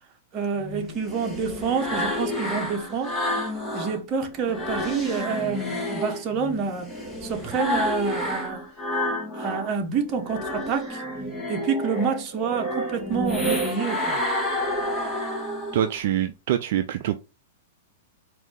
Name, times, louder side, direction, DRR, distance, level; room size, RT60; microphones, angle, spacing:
voice 1, 0.3-3.2 3.7-6.9 7.2-8.7 9.4-11.0 11.5-14.2, right 6 dB, 35° right, 1.2 m, -28 dB
sound 1, 0.6-4.0 4.4-9.7 10.1-16.0, left 1 dB, 5° left, 1.4 m, -29 dB
voice 2, 15.7-17.2, right 11 dB, 60° right, 0.4 m, -25 dB
4.6 x 2.7 x 3.7 m
hypercardioid pair, 120°, 0 cm